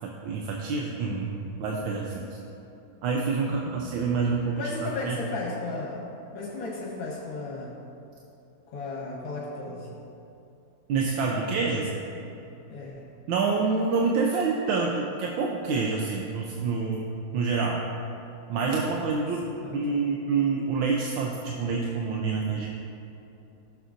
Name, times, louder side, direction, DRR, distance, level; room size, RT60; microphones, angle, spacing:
voice 1, 0.0-2.4 3.0-5.2 10.9-11.8 13.3-17.8 18.5-22.7, right 4 dB, 85° right, -1 dB, 1.5 m, -27 dB
voice 2, 3.4-3.8 4.6-6.0 6.3-7.7 8.7-9.9 11.7-11.8 12.7-13.0 19.6-20.0, left 3 dB, 80° left, -4 dB, 1.9 m, -35 dB
15.0 x 6.9 x 2.6 m, 2.7 s
omnidirectional pair, 2.1 m